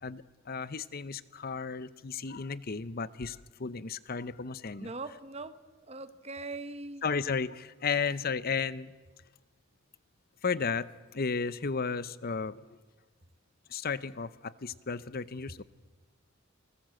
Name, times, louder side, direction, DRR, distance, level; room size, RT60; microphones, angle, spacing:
voice 1, 0.0-4.9 7.0-8.9 10.4-12.7 13.7-15.6, left 5 dB, 45° left, 16 dB, 0.7 m, -34 dB
voice 2, 4.8-5.6 5.9-7.0, right 3 dB, 30° right, 12 dB, 1.2 m, -40 dB
30.0 x 20.0 x 7.8 m, 1.3 s
head